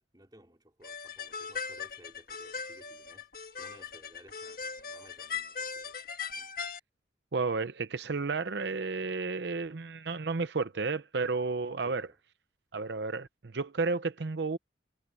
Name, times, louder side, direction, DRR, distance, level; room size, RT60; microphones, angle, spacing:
voice 1, 0.0-3.3 3.6-6.0 11.8-12.2, right 1 dB, 20° right, 3.8 m, -58 dB
sound 1, 0.8-6.8, left 6 dB, 50° left, 1.7 m, -39 dB
voice 2, 7.3-12.1 12.7-14.6, right 4 dB, 65° right, 0.7 m, -32 dB
head